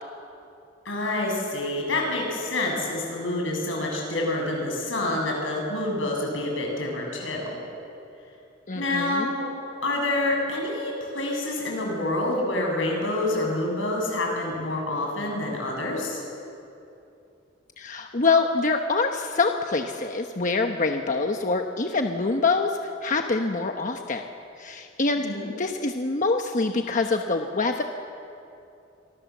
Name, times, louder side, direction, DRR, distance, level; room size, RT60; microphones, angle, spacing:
voice 1, 0.8-7.6 8.7-9.5 9.8-16.2 25.2-25.5, left 2 dB, 85° left, 0 dB, 7.6 m, -27 dB
voice 2, 8.7-9.3 17.8-24.2 24.6-25.3 25.6-27.8, left 3 dB, 40° left, 4 dB, 1.1 m, -25 dB
28.0 x 24.0 x 7.3 m, 2.7 s
head